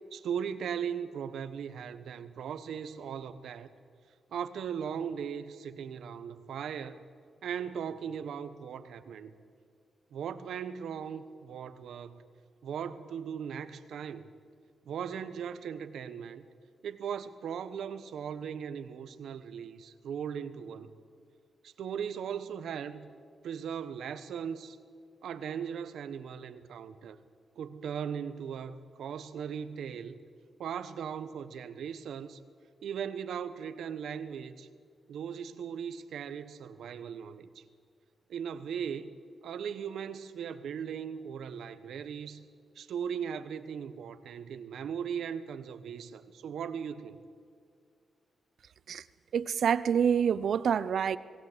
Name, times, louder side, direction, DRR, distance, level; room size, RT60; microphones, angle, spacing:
voice 1, 0.1-3.7 4.3-7.0 7.4-9.3 10.1-12.2 12.6-14.3 14.9-16.4 16.8-20.9 21.6-23.1 23.4-24.8 25.2-27.2 27.6-30.2 30.6-32.4 32.8-34.7 35.1-37.6 38.3-39.1 39.4-42.5 42.8-47.2, right 7 dB, 90° right, 1.1 m, -38 dB
voice 2, 49.3-51.2, right 7 dB, 70° right, 0.6 m, -27 dB
20.5 x 18.0 x 8.0 m
wide cardioid pair, 125°, 0 cm